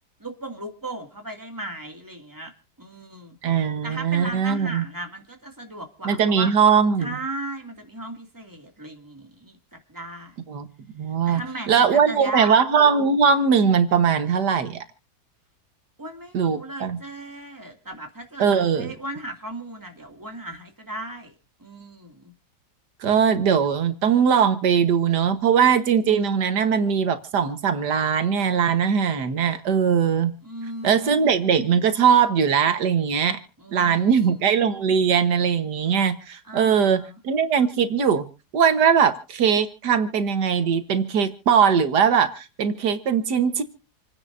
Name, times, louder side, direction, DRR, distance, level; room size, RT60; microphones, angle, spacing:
voice 1, 0.2-2.5 2.8-6.5 7.0-10.4 11.2-12.6 16.0-21.3 21.6-22.3 30.4-31.4 33.6-34.8 36.4-37.2, right 1 dB, 10° right, 3 dB, 2.3 m, -37 dB
voice 2, 3.4-4.8 6.1-7.1 10.5-10.7 11.0-11.4 11.7-14.8 16.3-17.0 18.4-18.9 23.0-30.3 30.8-33.4 33.7-38.3 38.5-43.6, right 7 dB, 90° right, 9 dB, 1.9 m, -20 dB
28.0 x 10.0 x 2.6 m, 0.35 s
omnidirectional pair, 1.7 m